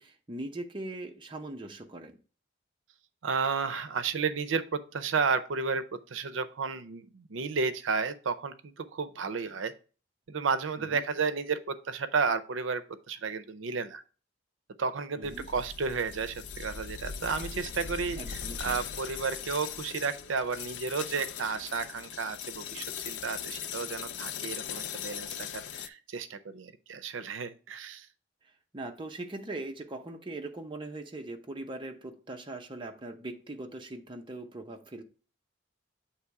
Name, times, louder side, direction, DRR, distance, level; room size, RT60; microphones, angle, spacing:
voice 1, 0.0-2.2 10.8-11.0 15.2-15.5 18.2-18.8 28.7-35.0, right 2 dB, 25° right, 0.7 m, -40 dB
voice 2, 3.2-9.7 10.3-14.0 14.8-28.1, right 5 dB, 90° right, 0.5 m, -32 dB
sound 1, 15.2-25.9, left 8 dB, 65° left, 0.4 m, -39 dB
8.0 x 3.1 x 4.6 m
head